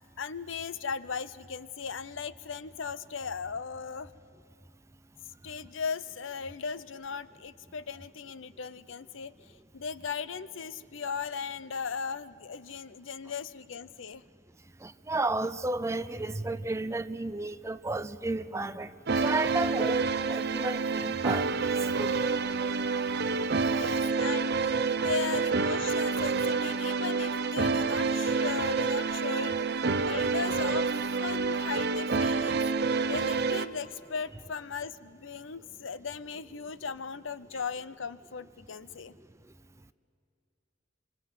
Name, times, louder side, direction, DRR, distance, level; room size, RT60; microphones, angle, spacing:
voice 1, 0.2-4.1 5.4-9.3 9.7-14.2 23.7-29.7 30.1-30.9 31.2-32.6 33.1-39.1, left 5 dB, 75° left, 0.7 m, -37 dB
voice 2, 14.8-22.2 22.6-22.9 23.3-23.4 23.6-24.0 25.0-25.1, right 2 dB, 15° right, 0.5 m, -33 dB
sound 1, 19.1-33.7, right 4 dB, 55° right, 0.7 m, -28 dB
25.0 x 25.0 x 7.6 m
head